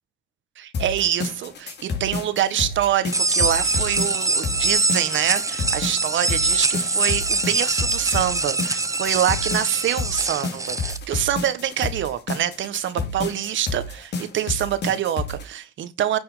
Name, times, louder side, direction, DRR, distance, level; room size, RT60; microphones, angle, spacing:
voice 1, 0.6-16.2, right 10 dB, 75° right, 1.5 m, -25 dB
sound 1, 0.7-15.4, left 4 dB, 60° left, 3.3 m, -30 dB
sound 2, 3.1-11.0, right 3 dB, 15° right, 0.9 m, -24 dB
9.8 x 6.1 x 5.1 m
cardioid pair, 90°, 20 cm